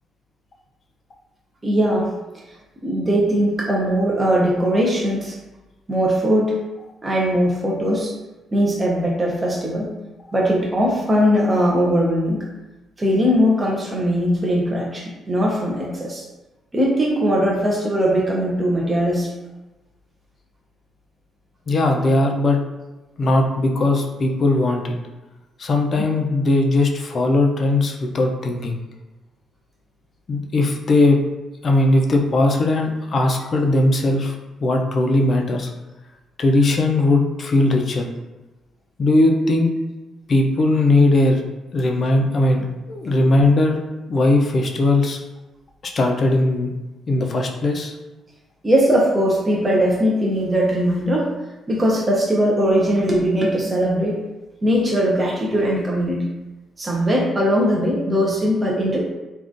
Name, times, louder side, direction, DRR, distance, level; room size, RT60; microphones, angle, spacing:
voice 1, 1.6-2.1 2.8-5.4 5.9-6.6 7.0-8.1 8.5-9.9 10.3-12.4 13.0-16.2 16.7-19.3 48.6-51.3 51.7-54.2 54.6-56.3 56.8-59.1, equal, 20° right, -3 dB, 0.5 m, -20 dB
voice 2, 21.7-22.6 23.2-25.0 25.6-28.8 30.3-31.2 31.6-34.3 34.6-35.7 36.4-38.1 39.0-39.7 40.3-41.4 41.7-43.8 44.1-45.2 45.8-46.7 47.1-47.9, left 2 dB, 40° left, 2 dB, 0.4 m, -18 dB
3.6 x 2.3 x 2.5 m, 1.1 s
cardioid pair, 145°, 0 cm